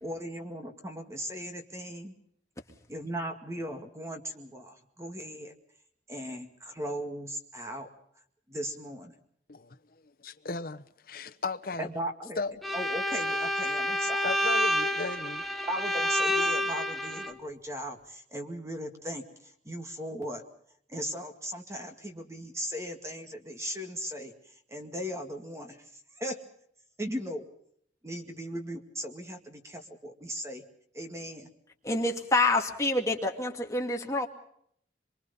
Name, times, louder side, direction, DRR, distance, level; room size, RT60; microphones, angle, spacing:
voice 1, 0.0-2.1 2.9-5.5 6.1-7.9 8.5-9.1 11.8-12.4 12.7-14.3 15.7-20.4 20.9-24.3 24.7-25.8 26.1-26.4 27.0-27.4 28.0-30.6 30.9-31.5, equal, 15° right, 2.1 m, -37 dB
voice 2, 10.2-11.9 12.4-12.5 14.2-15.4, left 3 dB, 55° left, 1.0 m, -35 dB
Bowed string instrument, 12.6-17.3, equal, ahead, 1.2 m, -28 dB
voice 3, 31.8-34.3, left 2 dB, 15° left, 2.3 m, -27 dB
25.0 x 24.0 x 5.5 m
head